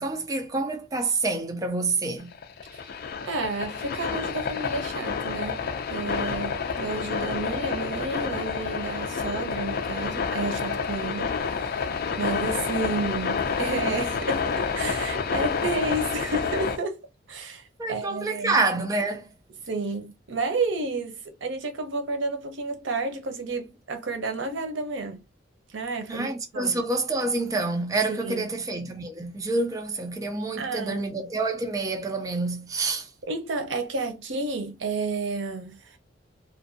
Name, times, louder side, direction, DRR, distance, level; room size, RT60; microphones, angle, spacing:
voice 1, 0.0-2.3 17.8-19.3 26.1-33.1, right 3 dB, 20° right, 0.4 m, -27 dB
sound 1, 2.2-16.8, left 5 dB, 55° left, 0.4 m, -29 dB
voice 2, 3.2-5.6 5.9-11.3 11.6-11.8 12.1-17.0 17.3-18.6 19.7-25.2 25.7-26.8 28.1-28.5 30.6-31.1 33.2-36.0, right 3 dB, 85° right, 0.6 m, -31 dB
2.5 x 2.1 x 2.6 m
head